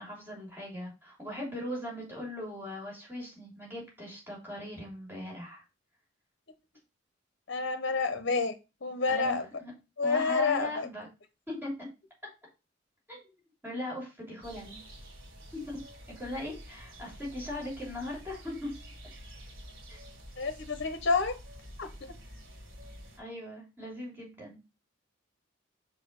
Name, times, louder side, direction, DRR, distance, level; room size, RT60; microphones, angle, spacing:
voice 1, 0.0-5.6 9.1-9.7 10.0-11.1 11.5-11.9 13.1-14.8 15.5-15.6 16.2-18.7 19.9-20.0 23.2-24.6, left 1 dB, 10° right, -4 dB, 3.2 m, -39 dB
voice 2, 7.5-8.5 8.8-9.4 10.0-10.9 20.4-21.4 21.8-22.1, left 4 dB, 60° left, 9 dB, 0.8 m, -29 dB
sound 1, 14.4-23.2, equal, 80° right, 3.0 m, -49 dB
4.9 x 4.6 x 5.2 m, 0.28 s
head